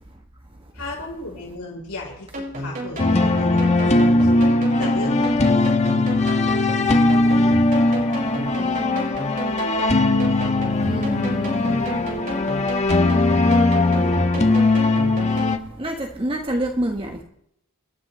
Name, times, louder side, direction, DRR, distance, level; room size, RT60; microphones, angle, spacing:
voice 1, 0.7-4.4 4.8-5.7, left 2 dB, 85° left, 4.0 m, -35 dB
sound 1, 2.3-15.6, right 1 dB, 40° right, 5.5 m, -32 dB
sound 2, 3.0-15.6, left 2 dB, 30° left, 1.1 m, -19 dB
voice 2, 10.8-11.8 15.8-17.2, right 1 dB, 25° right, 1.3 m, -27 dB
27.0 x 12.5 x 3.2 m
head